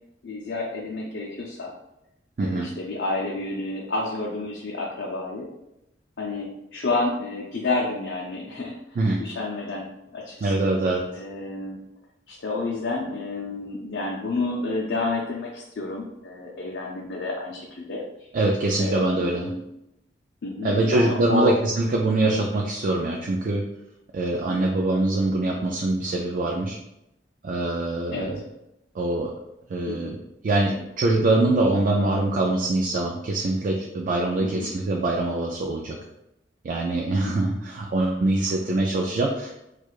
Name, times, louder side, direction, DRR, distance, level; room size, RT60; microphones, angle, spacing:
voice 1, 0.2-1.7 2.4-5.5 6.2-10.5 11.2-11.8 12.3-18.0 18.8-19.6 20.4-21.5 22.2-22.4 24.3-24.6 28.1-28.4 29.9-30.2 34.4-34.7 37.2-37.4, left 2 dB, 70° left, -2 dB, 0.5 m, -30 dB
voice 2, 2.4-2.7 9.0-9.2 10.4-11.1 18.3-19.5 20.6-23.6 24.1-26.8 27.4-28.4 28.9-29.3 29.7-30.2 30.4-36.0 36.6-39.5, right 2 dB, 50° right, 0 dB, 0.3 m, -24 dB
4.5 x 2.3 x 2.4 m, 0.87 s
head